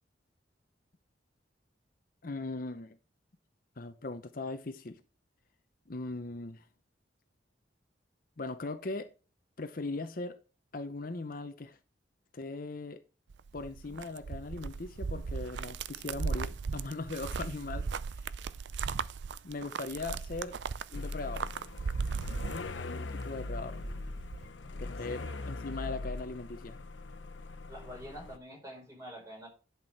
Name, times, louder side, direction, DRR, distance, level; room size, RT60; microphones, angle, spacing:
voice 1, 2.2-3.0 3.8-5.0 5.9-6.6 8.4-9.1 9.6-10.4 10.7-11.8 12.3-13.0 13.5-17.9 18.2-18.3 19.4-20.6 20.9-21.5 22.7-23.8 24.8-26.8, left 3 dB, 50° left, 0.7 m, -39 dB
sound 1, 13.3-23.2 23.5-24.5, right 5 dB, 70° right, 0.5 m, -37 dB
sound 2, 20.9-28.4, left 2 dB, 85° left, 0.9 m, -40 dB
voice 2, 25.1-25.5 27.7-29.5, equal, 15° right, 5.2 m, -47 dB
11.0 x 6.0 x 4.7 m
head